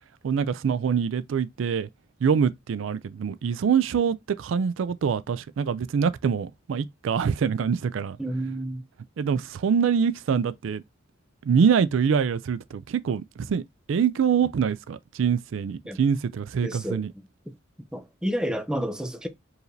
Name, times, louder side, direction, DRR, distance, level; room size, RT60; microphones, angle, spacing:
voice 1, 0.2-1.9 2.2-8.2 9.2-10.8 11.4-13.6 13.9-17.1, right 6 dB, 80° right, 0.4 m, -24 dB
voice 2, 8.2-8.8 15.9-16.0 16.6-17.0 17.9-19.3, equal, 5° right, 0.5 m, -30 dB
4.7 x 3.2 x 2.6 m
head